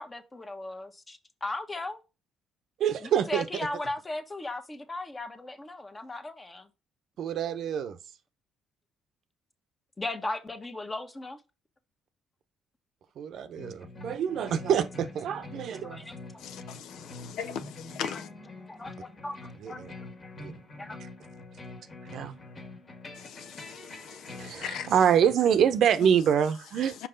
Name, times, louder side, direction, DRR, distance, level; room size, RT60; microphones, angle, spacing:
voice 1, 0.0-2.0 3.0-6.7 10.0-11.4 15.8-16.1 17.1-17.2 18.0-18.2 18.7-20.1 20.8-21.0, left 2 dB, 25° left, 1.3 m, -37 dB
voice 2, 2.8-3.4 7.2-8.0 13.2-16.1 19.6-19.9 20.4-20.5 22.1-22.4 24.4-27.0, right 8 dB, 65° right, 0.8 m, -26 dB
sound 1, 13.6-25.3, left 2 dB, 45° left, 1.8 m, -45 dB
voice 3, 16.4-18.3 23.2-24.9, left 8 dB, 70° left, 0.5 m, -39 dB
5.5 x 4.9 x 3.9 m
hypercardioid pair, 55°, 0 cm